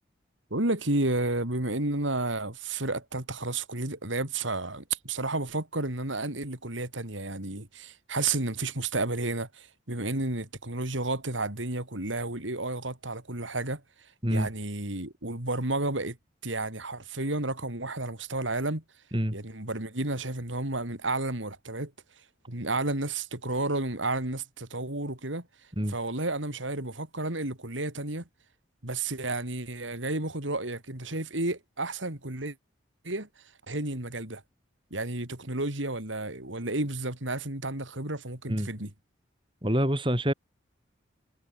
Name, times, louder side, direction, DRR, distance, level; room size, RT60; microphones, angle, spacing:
voice 1, 0.5-13.8 14.3-16.2 16.4-18.8 19.3-21.9 22.5-25.5 25.9-28.2 28.8-32.5 33.0-33.3 33.7-34.4 34.9-38.9, right 2 dB, 85° right, 4.5 m, -31 dB
voice 2, 39.6-40.3, equal, 25° right, 5.1 m, -26 dB
head